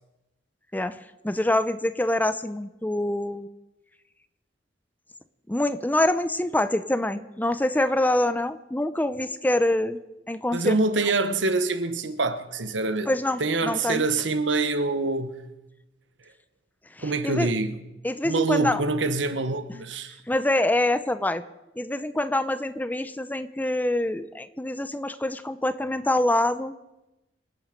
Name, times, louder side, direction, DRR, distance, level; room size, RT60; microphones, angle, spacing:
voice 1, 1.2-3.5 5.5-10.0 10.3-10.8 13.1-14.0 17.0-17.5 18.0-18.8 20.3-21.4 21.8-26.7, left 1 dB, 10° left, 0.6 m, -25 dB
voice 2, 10.5-13.1 13.4-15.5 17.0-17.8 18.2-20.2, right 3 dB, 85° right, 1.2 m, -25 dB
26.5 x 9.1 x 5.2 m
head